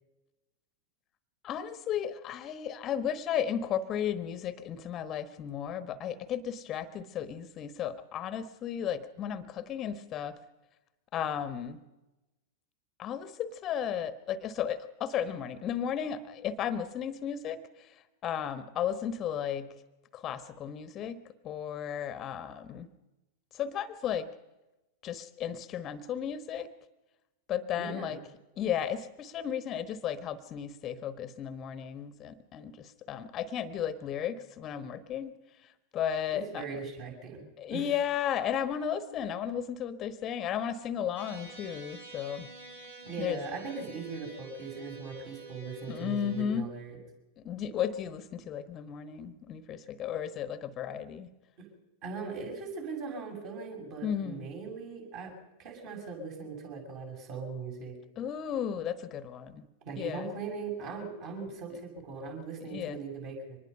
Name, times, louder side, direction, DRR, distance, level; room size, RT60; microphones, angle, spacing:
voice 1, 1.4-10.4 11.1-11.8 13.0-17.6 18.2-19.7 20.1-21.2 21.4-22.9 23.5-24.3 25.0-26.7 27.5-28.2 28.6-35.3 35.9-36.6 37.6-42.5 43.2-43.4 45.9-46.7 47.4-51.3 54.0-54.5 58.2-59.6 60.0-60.3 62.7-63.0, left 9 dB, 30° left, 13 dB, 1.2 m, -34 dB
voice 2, 27.8-28.2 36.3-37.9 43.0-47.0 51.6-51.7 52.0-55.3 55.6-58.0 59.8-63.6, right 4 dB, 45° right, 1 dB, 7.3 m, -40 dB
sound 1, 41.1-46.4, right 3 dB, 70° right, 5.2 m, -48 dB
24.5 x 20.5 x 5.6 m, 1.0 s
figure-of-eight pair, 90°, 0 cm